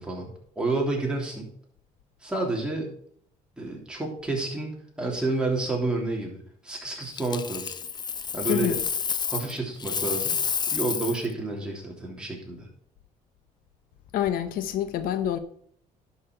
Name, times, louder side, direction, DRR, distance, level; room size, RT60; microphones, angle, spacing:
voice 1, 0.0-1.5 2.2-2.9 3.6-7.7 8.3-8.7 9.3-10.4 10.7-12.7, right 2 dB, 5° right, 3.2 m, -30 dB
Coin (dropping), 7.2-9.5 9.8-11.3 14.1-14.3, left 6 dB, 30° left, 0.5 m, -30 dB
voice 2, 8.5-8.8 14.1-15.4, left 10 dB, 80° left, 0.9 m, -27 dB
11.0 x 6.0 x 4.5 m
cardioid pair, 120°, 15 cm